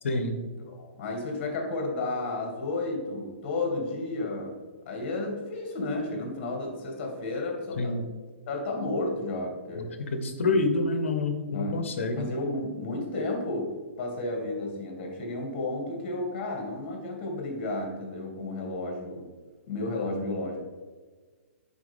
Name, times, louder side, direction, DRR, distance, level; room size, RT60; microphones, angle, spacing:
voice 1, 0.0-0.4 7.8-8.0 9.8-9.9 10.1-12.3, left 2 dB, 70° left, 7 dB, 1.2 m, -27 dB
voice 2, 0.7-4.6 4.9-8.0 8.5-9.9 10.4-10.6 11.5-19.3 19.7-20.6, left 2 dB, 40° left, 1 dB, 2.3 m, -32 dB
10.0 x 4.5 x 3.6 m, 1.4 s
hypercardioid pair, 130°, 7 cm